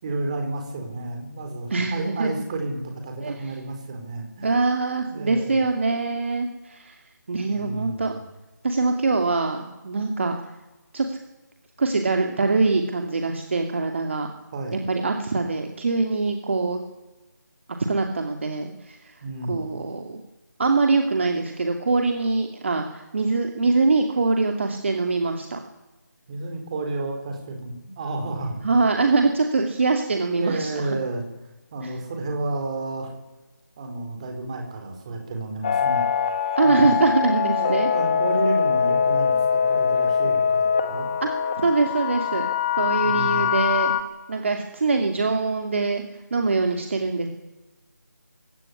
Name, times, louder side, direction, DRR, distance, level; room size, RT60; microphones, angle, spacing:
voice 1, 0.0-4.5 5.1-5.6 7.5-8.2 14.5-14.8 19.2-19.8 26.3-28.6 30.4-31.2 31.7-33.1 33.8-36.1 36.6-37.0 37.5-41.1 43.0-43.4, right 2 dB, 20° right, 3 dB, 4.3 m, -31 dB
voice 2, 1.7-2.3 3.2-3.5 4.4-8.1 8.6-10.3 10.9-11.2 11.8-14.3 14.9-16.8 17.9-20.2 20.6-25.6 28.6-30.9 31.8-31.9 36.6-37.9 41.2-41.3 41.6-42.5 42.8-43.9 44.3-47.3, right 3 dB, 40° right, 4 dB, 2.6 m, -23 dB
sound 1, 35.6-44.0, left 7 dB, 20° left, 1.6 m, -23 dB
21.0 x 16.5 x 9.9 m, 1.1 s
figure-of-eight pair, 170°, 10 cm